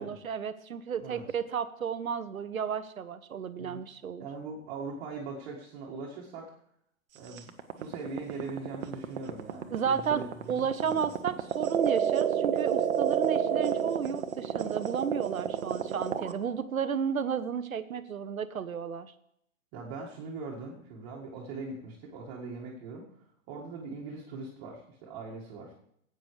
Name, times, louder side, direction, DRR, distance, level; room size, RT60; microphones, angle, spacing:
voice 1, 0.0-4.3 9.7-19.1, right 7 dB, 75° right, 13 dB, 1.0 m, -33 dB
voice 2, 4.2-6.5 7.1-7.5 7.8-11.0 19.7-23.1 23.5-25.7, right 3 dB, 30° right, -4 dB, 1.9 m, -41 dB
sound 1, 7.4-16.3, right 9 dB, 50° right, 1.1 m, -29 dB
16.0 x 9.1 x 3.3 m, 0.74 s
figure-of-eight pair, 120°, 42 cm